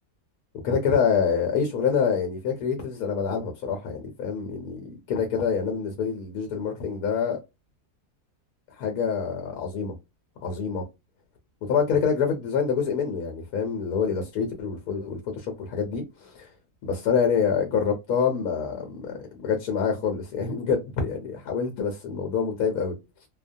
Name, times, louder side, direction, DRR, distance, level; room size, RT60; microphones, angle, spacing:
voice 1, 0.6-7.4 8.8-9.9 10.4-10.8 11.7-16.5 16.8-23.0, left 6 dB, 70° left, 1.1 m, -26 dB
2.8 x 2.1 x 2.5 m
omnidirectional pair, 1.7 m